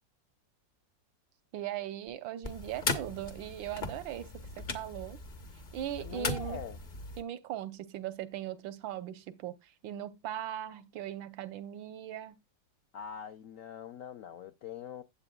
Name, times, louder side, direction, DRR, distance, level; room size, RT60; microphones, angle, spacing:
voice 1, 1.5-4.3 4.6-5.2 5.7-6.6 7.2-12.4, right 12 dB, 85° right, 1.5 m, -39 dB
sound 1, 2.4-7.2, left 3 dB, 40° left, 0.7 m, -38 dB
voice 2, 6.0-6.8 12.9-15.0, left 8 dB, 75° left, 0.7 m, -43 dB
12.5 x 7.8 x 2.2 m
omnidirectional pair, 2.0 m